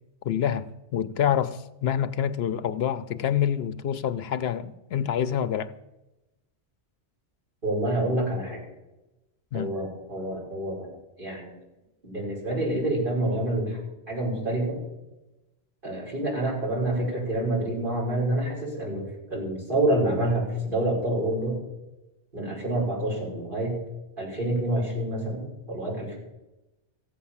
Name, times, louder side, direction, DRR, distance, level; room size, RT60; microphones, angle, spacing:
voice 1, 0.2-5.7 9.5-9.7, left 9 dB, 75° left, 0.9 m, -27 dB
voice 2, 7.6-8.6 9.5-10.9 11.2-11.5 12.0-13.8 14.1-14.8 15.8-21.6 22.3-23.7 24.2-26.2, right 1 dB, 50° right, 5.9 m, -27 dB
15.0 x 8.7 x 7.2 m
omnidirectional pair, 1.1 m